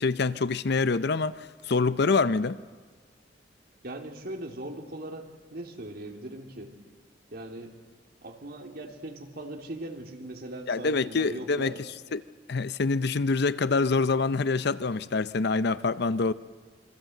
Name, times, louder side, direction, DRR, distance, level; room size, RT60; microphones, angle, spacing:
voice 1, 0.0-2.6 10.7-11.7 12.1-12.2 12.5-16.3, left 4 dB, 65° left, 0.7 m, -26 dB
voice 2, 3.8-6.7 7.3-7.7 8.2-11.8, right 1 dB, 55° right, 2.9 m, -40 dB
27.0 x 23.5 x 7.9 m
head